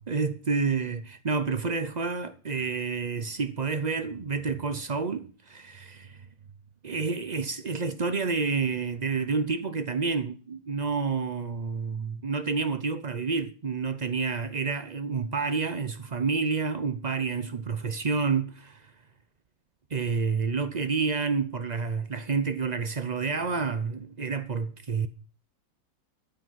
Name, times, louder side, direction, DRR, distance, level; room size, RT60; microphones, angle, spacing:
voice 1, 0.0-6.2 6.8-18.9 19.9-25.1, right 5 dB, 90° right, 0.3 m, -29 dB
14.0 x 9.0 x 5.7 m
omnidirectional pair, 2.1 m